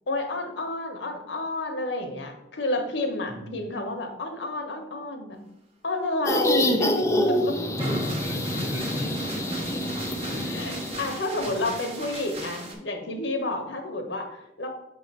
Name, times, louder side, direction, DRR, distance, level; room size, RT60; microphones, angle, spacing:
voice 1, 0.1-5.4 5.8-7.6 10.4-14.7, left 2 dB, 80° left, 4 dB, 1.0 m, -30 dB
sound 1, 6.3-11.2, left 1 dB, 15° left, 0.5 m, -27 dB
sound 2, 7.7-12.7, right 2 dB, 35° right, 1.2 m, -38 dB
voice 2, 7.8-9.3 10.3-10.5 11.5-11.6, left 1 dB, 15° right, 0 dB, 1.1 m, -33 dB
6.6 x 3.2 x 5.4 m, 0.84 s
head